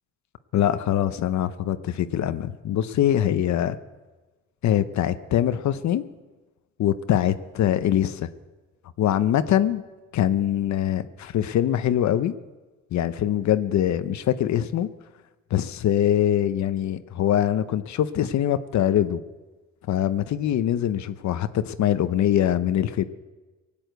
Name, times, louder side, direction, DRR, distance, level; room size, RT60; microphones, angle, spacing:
voice 1, 0.5-3.8 4.6-6.0 6.8-8.3 9.0-9.8 10.1-12.3 12.9-14.9 15.5-19.2 19.9-23.0, left 11 dB, 65° left, 12 dB, 0.8 m, -23 dB
18.5 x 8.8 x 7.9 m, 1.2 s
cardioid pair, 90°, 30 cm